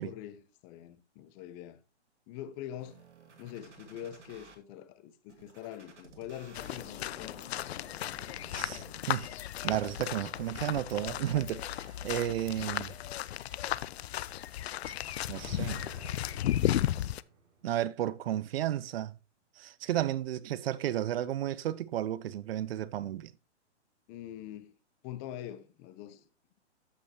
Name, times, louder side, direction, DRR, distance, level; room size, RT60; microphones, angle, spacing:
voice 1, 0.0-1.8 2.3-3.0 3.4-7.5 24.1-24.7 25.0-26.3, left 11 dB, 25° left, 0.8 m, -44 dB
sound 1, 2.8-4.6 5.3-9.3 9.8-10.8, right 4 dB, 80° right, 2.6 m, -55 dB
sound 2, 6.5-17.2, left 12 dB, 60° left, 0.5 m, -35 dB
voice 2, 8.5-9.3 9.6-12.9 15.3-15.9 17.6-19.2 19.6-23.3, right 12 dB, 55° right, 0.7 m, -33 dB
sound 3, 11.2-15.1 15.4-18.4, right 5 dB, 35° right, 3.6 m, -56 dB
14.0 x 5.5 x 2.9 m
hypercardioid pair, 145°, 35 cm